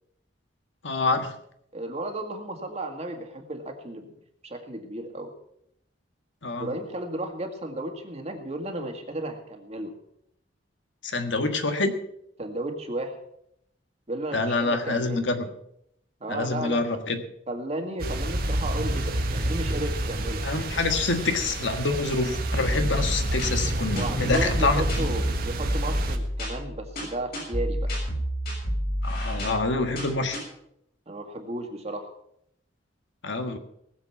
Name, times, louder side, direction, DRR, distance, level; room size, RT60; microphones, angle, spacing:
voice 1, 0.8-1.3 6.4-6.7 11.0-11.9 14.3-15.5 16.3-17.2 20.4-25.0 29.0-30.4 33.2-33.6, left 3 dB, 70° left, 7 dB, 1.5 m, -26 dB
voice 2, 1.7-4.1 4.4-5.3 6.6-9.9 12.4-13.2 14.1-15.3 16.2-16.8 17.5-20.5 23.9-27.9 31.1-32.1, right 1 dB, 35° right, 4 dB, 2.0 m, -34 dB
sound 1, 18.0-26.2, right 1 dB, 55° right, 1.5 m, -29 dB
sound 2, 22.3-30.4, equal, 55° left, 6.8 m, -30 dB
19.5 x 7.5 x 5.9 m, 0.75 s
head